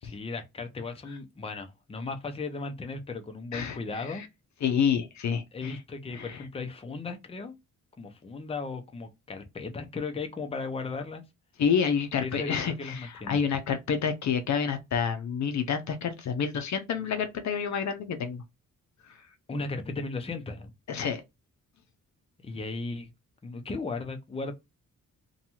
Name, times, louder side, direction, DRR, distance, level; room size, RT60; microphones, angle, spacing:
voice 1, 0.0-4.3 5.5-7.5 8.0-11.2 12.2-13.4 19.5-20.7 22.4-23.1 23.4-24.5, left 3 dB, 20° left, 0.6 m, -36 dB
voice 2, 3.5-4.2 4.6-5.8 6.1-6.4 11.6-18.4 19.1-19.2 20.9-21.2, left 7 dB, 60° left, 0.6 m, -29 dB
2.6 x 2.3 x 2.8 m
cardioid pair, 100°, 32 cm